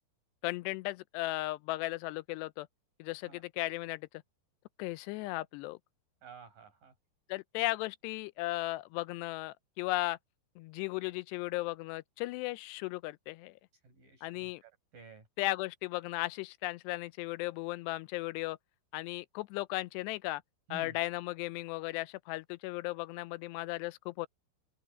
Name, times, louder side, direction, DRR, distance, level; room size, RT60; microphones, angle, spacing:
voice 1, 0.4-2.7 3.0-4.1 4.8-5.8 7.3-10.2 10.6-13.5 14.2-14.6 15.4-18.6 18.9-20.4 20.7-24.3, left 19 dB, 90° left, 2.8 m, -36 dB
voice 2, 6.2-6.9 13.7-15.3 20.7-21.0, right 4 dB, 55° right, 9.4 m, -52 dB
open air
omnidirectional pair, 4.8 m